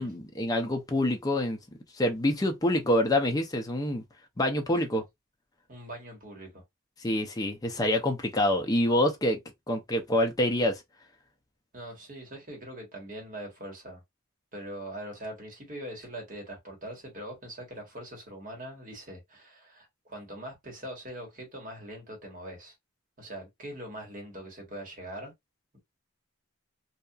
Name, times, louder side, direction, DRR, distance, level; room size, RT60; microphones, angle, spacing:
voice 1, 0.0-1.6 2.0-4.0 4.4-5.0 7.0-9.4 9.7-10.8, left 1 dB, 15° left, 0.4 m, -26 dB
voice 2, 5.7-6.6 11.7-14.0 14.5-22.7 23.2-25.3, right 1 dB, 40° right, 1.2 m, -42 dB
2.7 x 2.3 x 2.3 m
head